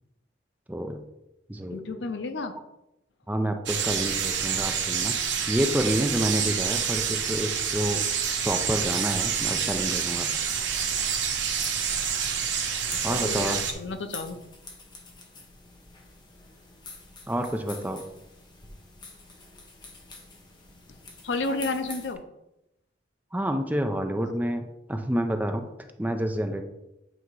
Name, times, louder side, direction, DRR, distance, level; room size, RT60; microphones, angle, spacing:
voice 1, 0.7-1.0 1.5-1.8 3.3-5.1 5.5-8.0 8.4-10.3 13.0-13.6 17.3-18.0 21.5-21.7 23.3-24.6 24.9-25.7 26.0-26.6, right 1 dB, 10° right, 6 dB, 0.4 m, -28 dB
voice 2, 1.7-2.6 12.9-14.4 21.2-22.2, left 3 dB, 80° left, 8 dB, 0.6 m, -31 dB
sound 1, 3.7-13.7, right 7 dB, 90° right, 0.9 m, -28 dB
sound 2, 10.8-22.1, left 3 dB, 25° left, 1.0 m, -47 dB
8.1 x 2.9 x 4.7 m, 0.88 s
head